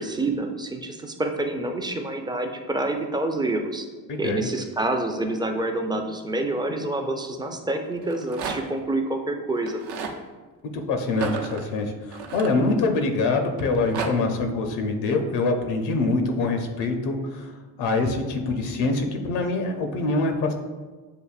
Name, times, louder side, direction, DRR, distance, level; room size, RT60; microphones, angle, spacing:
voice 1, 0.0-3.9 4.2-9.8, right 2 dB, 10° right, 4 dB, 0.4 m, -27 dB
voice 2, 4.1-4.5 10.7-17.5 17.8-20.5, left 3 dB, 70° left, 4 dB, 0.7 m, -24 dB
Rattle, 7.9-8.8 9.6-10.2 11.1-13.1 13.6-14.1, right 6 dB, 65° right, 0.7 m, -33 dB
6.7 x 2.6 x 2.4 m, 1.3 s
supercardioid pair, 70°, 43 cm